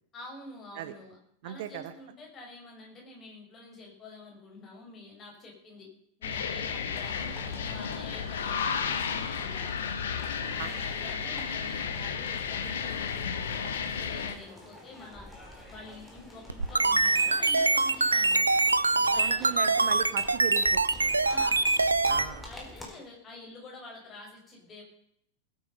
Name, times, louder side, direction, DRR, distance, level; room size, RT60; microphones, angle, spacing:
voice 1, 0.1-1.2 1.4-5.9 6.2-10.1 10.5-15.3 15.7-18.6 19.1-19.7 21.2-21.6 22.3-24.8, left 2 dB, 25° left, -1 dB, 6.9 m, -47 dB
voice 2, 1.4-1.9 10.6-10.7 19.2-21.2 22.1-22.5, right 11 dB, 50° right, 11 dB, 1.3 m, -37 dB
sound 1, 6.2-14.4, left 6 dB, 60° left, 1.5 m, -33 dB
sound 2, 6.9-22.9, left 1 dB, 5° left, 4.0 m, -48 dB
sound 3, 16.5-22.3, right 3 dB, 80° right, 0.7 m, -24 dB
20.0 x 9.1 x 5.5 m, 0.70 s
figure-of-eight pair, 90°, 0 cm